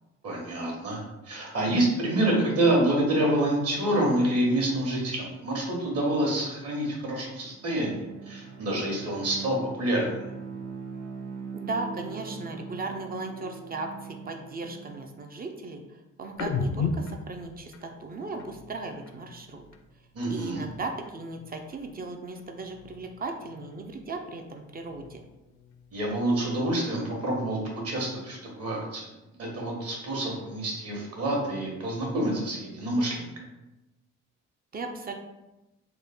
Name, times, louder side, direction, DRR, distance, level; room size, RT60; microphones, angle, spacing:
voice 1, 0.2-10.2 20.1-20.6 25.9-29.1 29.4-33.3, right 1 dB, 55° right, -2 dB, 1.2 m, -27 dB
Bowed string instrument, 7.4-15.1, right 5 dB, 85° right, 0.8 m, -41 dB
voice 2, 11.5-19.6 20.3-25.2 34.7-35.1, right 3 dB, 30° right, 4 dB, 0.4 m, -37 dB
sound 1, 16.3-19.9 20.2-22.1 22.3-24.2 24.6-26.4, left 4 dB, 60° left, 0.5 m, -38 dB
3.2 x 2.1 x 3.4 m, 1.0 s
cardioid pair, 90°, 30 cm